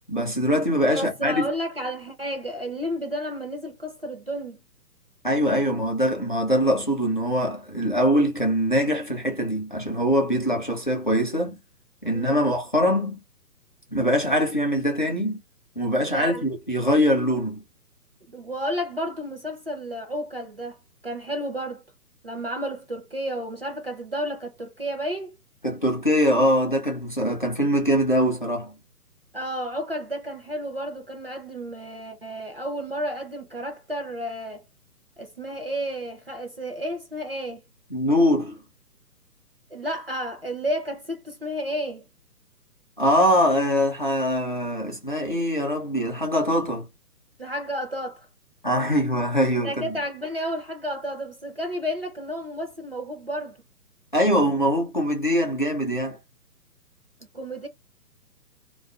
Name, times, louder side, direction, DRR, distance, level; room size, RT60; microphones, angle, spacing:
voice 1, 0.1-1.4 5.2-11.6 12.0-13.2 13.9-15.4 15.8-17.6 25.6-28.7 37.9-38.6 43.0-46.9 48.6-49.7 54.1-56.2, equal, 35° left, 0.4 m, -23 dB
voice 2, 0.9-4.6 12.1-12.4 16.1-16.4 18.3-20.8 21.0-21.8 22.2-25.4 29.3-34.6 35.2-37.6 39.7-42.1 47.4-48.3 49.6-53.6 57.2-57.7, equal, 40° right, 0.4 m, -31 dB
2.3 x 2.2 x 2.4 m
figure-of-eight pair, 140°, 49 cm